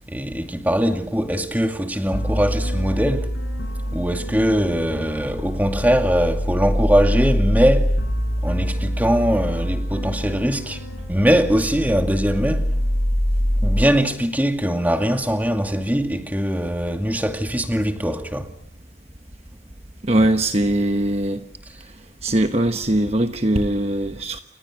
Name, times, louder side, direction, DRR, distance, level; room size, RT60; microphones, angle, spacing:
voice 1, 0.1-3.3 3.9-8.0 8.4-10.8 11.1-12.7 13.6-18.5 20.1-20.3 20.6-20.7 21.6-21.7, equal, 10° right, 2.3 m, -21 dB
sound 1, 2.1-13.8, equal, 85° left, 6.2 m, -24 dB
voice 2, 20.0-21.4 22.2-24.4, right 1 dB, 35° right, 1.1 m, -20 dB
30.0 x 25.5 x 6.3 m
head